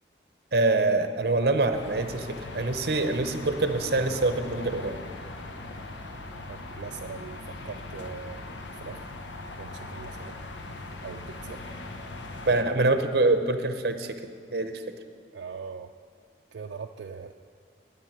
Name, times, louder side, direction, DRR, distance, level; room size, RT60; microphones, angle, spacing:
voice 1, 0.5-5.0 12.5-14.2 14.5-14.8, right 2 dB, 60° right, 8 dB, 0.8 m, -25 dB
sound 1, 1.7-12.6, left 2 dB, 90° left, 1.0 m, -40 dB
voice 2, 6.5-7.4 7.6-9.0 9.6-10.4 11.0-11.6 15.3-15.9 16.5-17.3, right 5 dB, 80° right, 3 dB, 0.4 m, -41 dB
11.5 x 5.6 x 8.9 m, 2.3 s
head